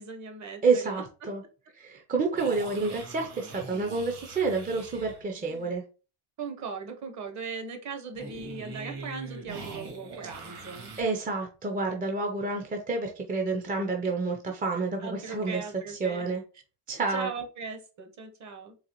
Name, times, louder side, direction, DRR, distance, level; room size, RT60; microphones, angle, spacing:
voice 1, 0.0-1.0 6.4-10.9 14.0-14.1 15.0-16.2 17.1-18.7, right 5 dB, 40° right, 6 dB, 0.8 m, -38 dB
voice 2, 0.6-1.4 1.7-5.8 10.5-10.6 11.0-16.4 16.9-17.3, right 4 dB, 20° right, 2 dB, 0.4 m, -29 dB
sound 1, 2.4-5.7 8.1-11.0, right 3 dB, 65° right, 1.8 m, -43 dB
3.9 x 3.2 x 2.9 m, 0.35 s
cardioid pair, 150°, 43 cm